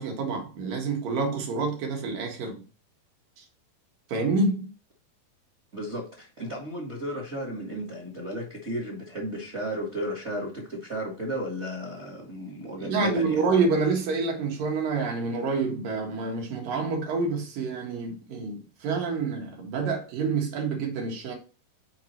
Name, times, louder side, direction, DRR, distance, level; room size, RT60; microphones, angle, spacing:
voice 1, 0.0-2.6 3.4-3.5 4.1-4.7 12.8-21.3, right 4 dB, 60° right, 3.0 m, -27 dB
voice 2, 5.7-13.4, equal, 35° right, 1.0 m, -34 dB
7.5 x 4.8 x 4.4 m
omnidirectional pair, 4.8 m